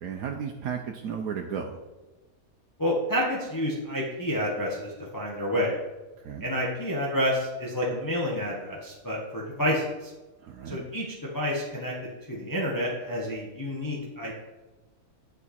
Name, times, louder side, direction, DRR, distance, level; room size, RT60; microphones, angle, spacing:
voice 1, 0.0-1.7 6.2-6.5 10.4-10.9, right 7 dB, 75° right, 2 dB, 1.2 m, -34 dB
voice 2, 2.8-5.8 6.4-10.1 10.7-14.3, equal, 15° left, -4 dB, 1.1 m, -29 dB
11.0 x 5.0 x 4.3 m, 1.2 s
omnidirectional pair, 1.5 m